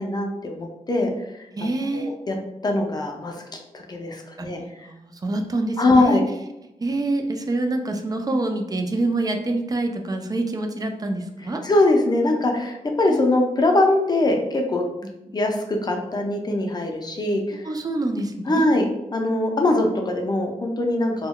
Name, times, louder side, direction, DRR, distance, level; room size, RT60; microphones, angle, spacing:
voice 1, 0.0-1.5 1.9-2.4 2.6-3.4 3.7-4.9 5.8-6.2 11.6-14.8 15.3-17.7 18.5-18.8 19.1-21.3, left 2 dB, 30° left, 2 dB, 0.5 m, -22 dB
voice 2, 1.5-2.1 4.4-6.2 6.8-11.6 13.1-13.2 17.6-18.7, right 2 dB, 30° right, 5 dB, 0.3 m, -26 dB
2.2 x 2.1 x 3.6 m, 0.91 s
wide cardioid pair, 110°, 13 cm